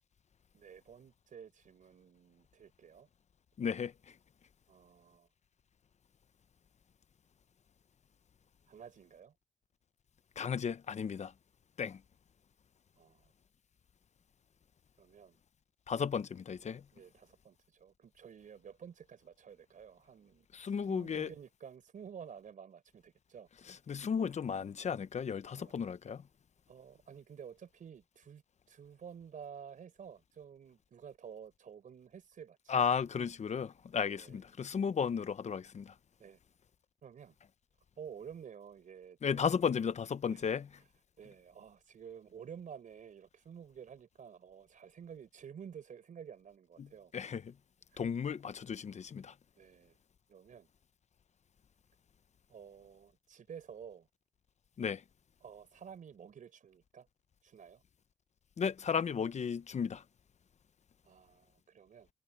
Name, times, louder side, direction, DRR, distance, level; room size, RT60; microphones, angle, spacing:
voice 1, 0.5-3.1 4.7-5.3 8.7-9.3 13.0-13.3 15.0-15.4 16.9-20.5 20.9-23.5 25.5-25.7 26.7-28.4 28.7-32.9 33.9-34.4 36.2-36.4 37.0-37.4 38.0-39.7 40.3-40.5 41.2-47.1 47.9-48.0 49.6-50.0 50.3-50.7 52.5-54.1 55.4-57.1 57.4-57.8 61.0-62.1, right 7 dB, 75° right, 4.8 m, -51 dB
voice 2, 3.6-3.9 10.4-11.3 11.8-12.0 15.9-16.8 20.5-21.3 23.9-26.2 32.7-35.9 39.2-40.6 46.8-46.9 47.1-47.5 48.0-49.3 54.8-55.0 58.6-60.0, left 6 dB, 60° left, 0.9 m, -34 dB
cardioid pair, 70°, 14 cm